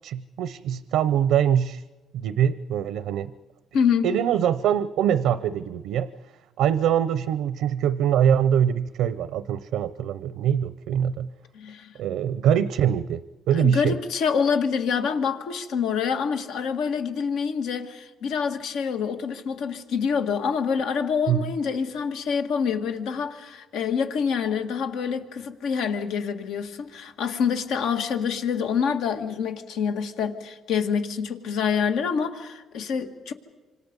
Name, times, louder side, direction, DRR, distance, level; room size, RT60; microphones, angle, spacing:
voice 1, 0.0-1.8 2.1-3.3 4.0-6.1 6.6-11.3 12.0-14.0 21.3-21.5, right 9 dB, 90° right, 0.6 m, -23 dB
voice 2, 3.7-4.1 11.5-11.9 13.6-33.3, left 6 dB, 85° left, 1.9 m, -26 dB
27.0 x 26.0 x 5.4 m
cardioid pair, 90°, 0 cm